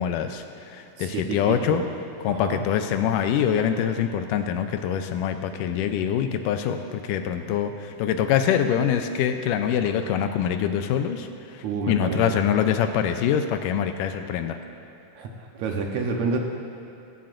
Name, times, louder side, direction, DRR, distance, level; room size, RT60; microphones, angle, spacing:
voice 1, 0.0-1.8 2.2-14.6, left 8 dB, 85° left, 7 dB, 2.2 m, -24 dB
voice 2, 1.0-1.8 2.3-2.6 11.6-12.4 15.2-16.4, right 4 dB, 70° right, 1 dB, 2.0 m, -29 dB
16.5 x 15.5 x 2.6 m, 2.9 s
omnidirectional pair, 3.8 m